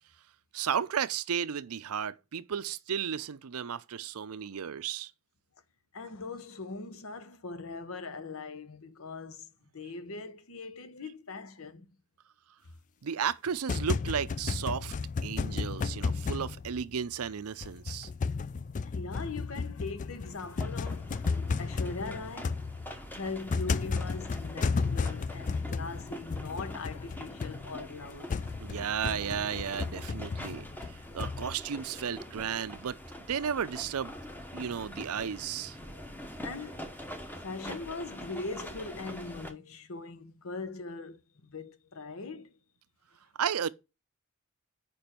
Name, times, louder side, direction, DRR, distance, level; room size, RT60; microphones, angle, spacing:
voice 1, 0.5-5.1 13.0-14.9 15.2-18.1 28.6-33.0 33.3-34.2 34.5-35.8 43.4-43.7, right 7 dB, 80° right, 0.5 m, -34 dB
voice 2, 5.9-11.9 18.8-22.7 23.1-28.4 35.8-36.0 36.4-42.5, left 3 dB, 70° left, 1.0 m, -41 dB
sound 1, 13.5-17.3 17.6-31.6, left 4 dB, 35° left, 0.3 m, -33 dB
sound 2, 20.3-39.5, equal, 10° left, 0.9 m, -45 dB
6.9 x 5.2 x 4.4 m
head